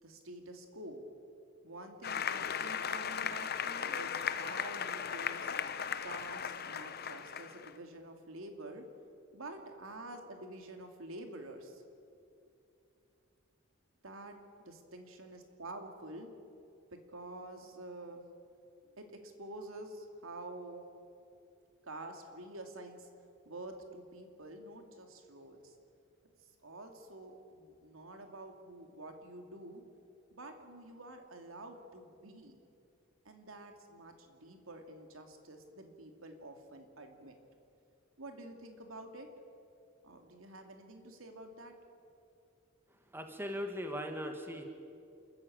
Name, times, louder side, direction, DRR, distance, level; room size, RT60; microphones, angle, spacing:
voice 1, 0.0-1.0 1.6-5.5 6.0-8.8 9.3-11.8 14.0-14.4 14.7-16.3 16.9-18.2 18.8-20.8 21.9-23.1 23.5-25.8 26.6-29.8 30.3-32.6 33.2-37.3 38.2-39.3 40.0-41.7, right 1 dB, 80° right, 5 dB, 2.6 m, -48 dB
Applause, 2.0-7.7, left 7 dB, 50° left, 0.9 m, -37 dB
voice 2, 43.1-44.6, equal, 10° right, 5 dB, 1.6 m, -39 dB
28.0 x 14.5 x 8.8 m, 2.6 s
head